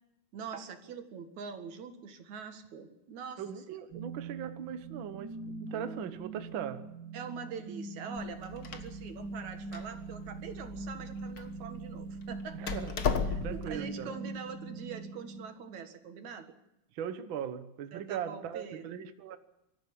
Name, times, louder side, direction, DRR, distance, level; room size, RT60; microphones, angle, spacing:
voice 1, 0.3-3.4 5.7-6.0 7.1-12.7 13.3-16.5 17.9-18.9, right 6 dB, 60° right, 7 dB, 3.0 m, -44 dB
voice 2, 3.4-6.9 12.5-13.0 13.2-14.1 16.9-19.4, right 8 dB, 80° right, 9 dB, 1.1 m, -39 dB
sound 1, 3.9-15.9, right 4 dB, 35° right, 2.5 m, -43 dB
Door, 8.2-13.8, left 6 dB, 75° left, 0.8 m, -37 dB
24.5 x 14.0 x 8.6 m, 0.90 s
omnidirectional pair, 4.1 m